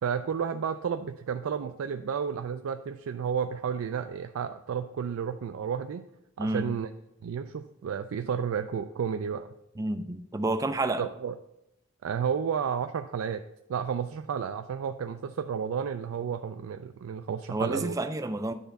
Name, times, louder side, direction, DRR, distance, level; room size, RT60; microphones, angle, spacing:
voice 1, 0.0-6.1 6.4-6.9 7.2-9.5 11.0-11.3 12.0-13.4 13.7-18.0, right 7 dB, 90° right, 8 dB, 0.4 m, -32 dB
voice 2, 9.8-11.1 17.5-18.5, right 2 dB, 15° right, 10 dB, 0.4 m, -29 dB
10.0 x 3.4 x 5.2 m, 0.87 s
head